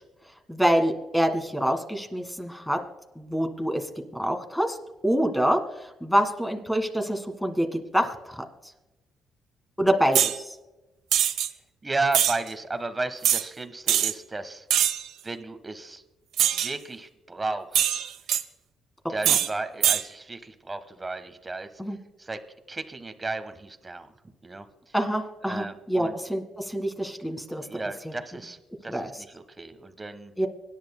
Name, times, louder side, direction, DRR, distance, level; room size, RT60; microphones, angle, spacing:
voice 1, 0.5-2.8 3.1-3.9 4.1-4.8 5.0-8.4 9.8-10.5 19.3-19.4 21.8-22.0 24.9-27.7 28.9-29.1 30.4-30.5, equal, 5° left, 5 dB, 1.7 m, -26 dB
sound 1, 10.1-10.4 11.1-11.5 12.1-12.4 13.2-13.4 13.9-14.1 14.7-15.1 16.4-16.7 17.7-18.4 19.2-19.5 19.8-20.0, right 10 dB, 80° right, 0.6 m, -22 dB
voice 2, 11.8-14.7 15.2-16.0 16.5-18.0 19.1-22.4 22.7-24.1 24.4-24.9 25.4-26.2 27.6-30.3, right 3 dB, 20° right, 9 dB, 1.3 m, -34 dB
24.5 x 10.5 x 2.2 m, 1.0 s
cardioid pair, 90°, 0 cm